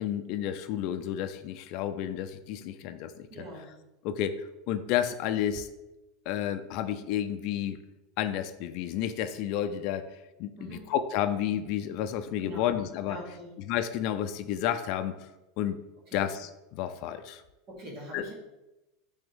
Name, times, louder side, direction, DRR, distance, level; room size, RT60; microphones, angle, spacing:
voice 1, 0.0-3.4 4.0-5.7 6.3-7.8 8.2-13.2 13.7-15.1 15.6-15.8 16.1-17.4 18.1-18.3, left 10 dB, 55° left, 10 dB, 0.5 m, -31 dB
voice 2, 3.3-3.7 10.6-10.9 12.4-13.5 16.1-16.2 17.7-18.3, equal, 50° right, -4 dB, 2.2 m, -43 dB
7.6 x 3.5 x 3.6 m, 0.98 s
supercardioid pair, 140°, 0 cm